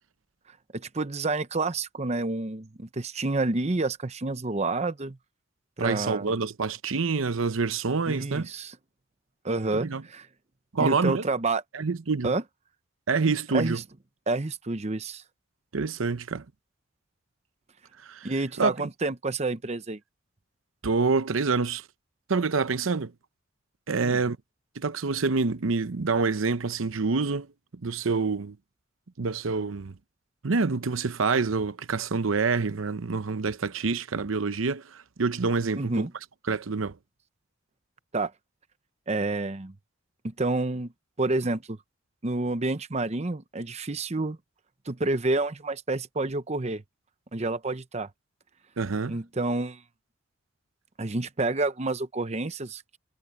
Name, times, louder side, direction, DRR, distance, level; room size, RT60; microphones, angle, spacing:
voice 1, 0.7-5.2 5.8-6.3 8.0-8.8 9.4-10.3 10.8-11.6 12.2-12.4 13.5-13.8 14.3-15.2 18.2-20.0 35.7-36.1 38.1-38.3 39.1-39.7 40.2-40.9 41.2-41.8 42.2-44.4 44.9-46.8 47.3-48.1 49.1-49.8 51.0-53.0, right 2 dB, 35° right, 0.8 m, -29 dB
voice 2, 5.8-8.5 9.7-10.0 10.7-11.2 11.7-12.3 13.1-13.8 15.7-16.4 18.0-18.3 18.6-18.7 20.8-21.8 22.3-23.1 23.9-24.4 24.8-27.5 27.8-28.6 29.2-29.9 30.4-36.1 36.5-36.9 48.8-49.2, right 4 dB, 85° right, 0.8 m, -27 dB
head